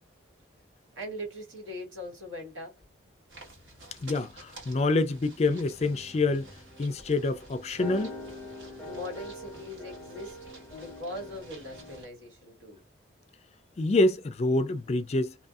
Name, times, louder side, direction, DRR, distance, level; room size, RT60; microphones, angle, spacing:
voice 1, 1.0-2.7 8.9-10.4 10.7-12.8, left 1 dB, 85° right, 1.8 m, -40 dB
sound 1, 3.3-12.1, right 2 dB, 70° right, 1.5 m, -51 dB
voice 2, 4.0-6.5 6.8-8.1 13.8-15.3, left 2 dB, 35° left, 0.3 m, -26 dB
sound 2, 5.5-12.0, left 1 dB, 10° left, 0.7 m, -44 dB
2.7 x 2.6 x 2.3 m
head